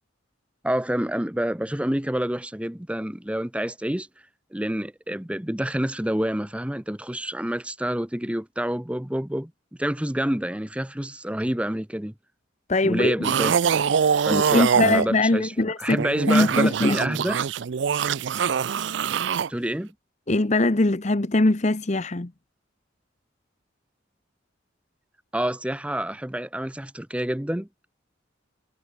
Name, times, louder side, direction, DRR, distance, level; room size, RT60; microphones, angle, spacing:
voice 1, 0.6-4.1 4.5-9.5 9.8-12.1 12.8-13.5 14.3-17.4 19.5-19.9 25.3-27.7, right 1 dB, 5° right, 0.7 m, -28 dB
voice 2, 12.7-13.1 14.3-16.0 16.3-17.0 20.3-22.3, left 2 dB, 35° left, 0.9 m, -21 dB
sound 1, 13.2-15.1 15.8-19.5, right 7 dB, 65° right, 0.4 m, -23 dB
head